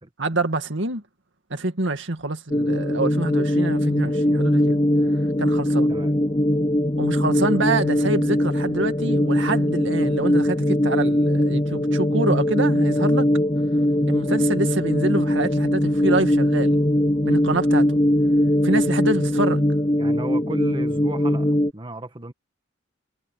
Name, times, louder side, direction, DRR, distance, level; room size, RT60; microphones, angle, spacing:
voice 1, 0.2-1.0 1.5-4.8 5.4-5.9 7.0-13.3 14.1-16.8 17.2-18.0 18.6-19.7, right 2 dB, 65° right, 2.2 m, -26 dB
sound 1, 2.5-21.7, left 1 dB, 20° left, 0.7 m, -21 dB
voice 2, 20.0-22.3, right 2 dB, 25° right, 1.7 m, -34 dB
head